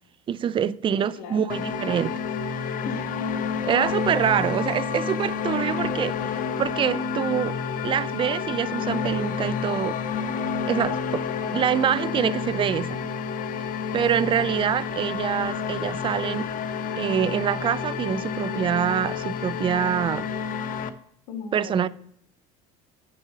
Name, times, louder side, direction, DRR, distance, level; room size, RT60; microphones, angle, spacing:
voice 1, 0.3-2.2 2.6-2.7 3.6-10.0 10.7-11.3 11.5-13.0 13.9-16.5 17.0-20.3 21.5-21.9, right 9 dB, 30° right, 0.4 m, -25 dB
voice 2, 1.0-1.5 2.8-3.1 4.2-4.4 21.3-21.9, left 5 dB, 80° left, 2.2 m, -36 dB
sound 1, 1.5-20.9, left 6 dB, 50° left, 0.8 m, -29 dB
6.8 x 6.1 x 6.7 m
supercardioid pair, 105°, 18 cm